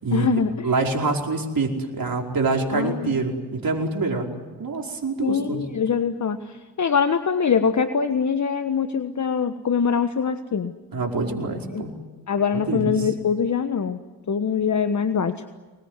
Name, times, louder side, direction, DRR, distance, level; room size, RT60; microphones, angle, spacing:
voice 1, 0.1-0.7 2.7-3.2 5.2-10.7 11.7-11.8 12.3-14.0 14.3-15.5, left 6 dB, 35° left, 10 dB, 1.4 m, -23 dB
voice 2, 0.6-4.3 4.6-5.7 10.9-12.0 12.5-13.0, right 3 dB, 45° right, 2 dB, 5.1 m, -25 dB
24.5 x 21.0 x 9.7 m, 1.3 s
hypercardioid pair, 45°, 47 cm